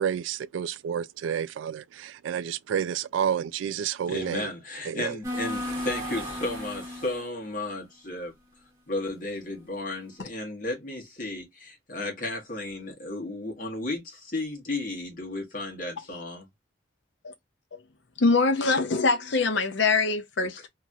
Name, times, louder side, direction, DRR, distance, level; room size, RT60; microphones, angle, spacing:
voice 1, 0.0-4.5 4.9-5.2, right 8 dB, 80° right, 0.3 m, -30 dB
voice 2, 4.1-8.3 8.9-16.5 20.4-20.7, left 2 dB, 45° left, 1.3 m, -34 dB
sound 1, 5.2-7.3, left 1 dB, 15° right, 1.4 m, -34 dB
voice 3, 18.2-20.7, left 3 dB, 65° left, 0.6 m, -23 dB
2.9 x 2.8 x 2.3 m
head